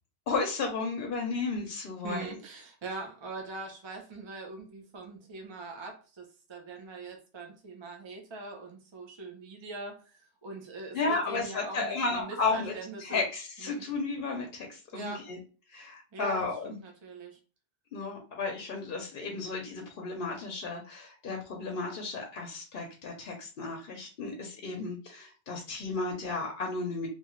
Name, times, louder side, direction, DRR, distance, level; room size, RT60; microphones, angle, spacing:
voice 1, 0.3-2.4 10.9-12.7 13.0-15.4 15.7-16.8 17.9-27.1, left 3 dB, 60° left, 1 dB, 0.7 m, -33 dB
voice 2, 2.0-13.2 13.6-13.9 14.9-15.3 16.1-17.4, right 3 dB, 40° right, 2 dB, 0.4 m, -42 dB
2.7 x 2.3 x 3.0 m, 0.36 s
omnidirectional pair, 1.1 m